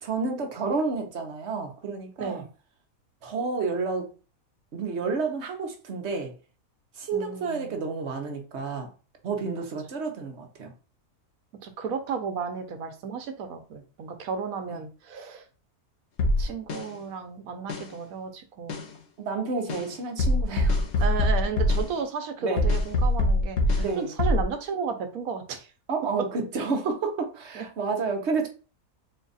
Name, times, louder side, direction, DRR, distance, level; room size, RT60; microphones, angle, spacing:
voice 1, 0.0-2.4 3.2-4.1 4.7-6.3 7.0-8.9 9.2-10.7 14.7-14.8 19.2-20.8 22.4-22.7 23.8-24.1 25.9-28.5, right 4 dB, 55° right, 1.1 m, -30 dB
voice 2, 7.1-7.7 11.6-15.5 16.4-18.9 21.0-25.7 27.5-27.7, right 6 dB, 75° right, 1.2 m, -33 dB
sound 1, 16.2-16.8 17.7-17.8 18.7-18.8 19.7-19.8 20.2-21.9 22.6-23.9 24.2-24.5, left 1 dB, 60° left, 1.0 m, -23 dB
4.2 x 2.4 x 3.9 m
omnidirectional pair, 1.5 m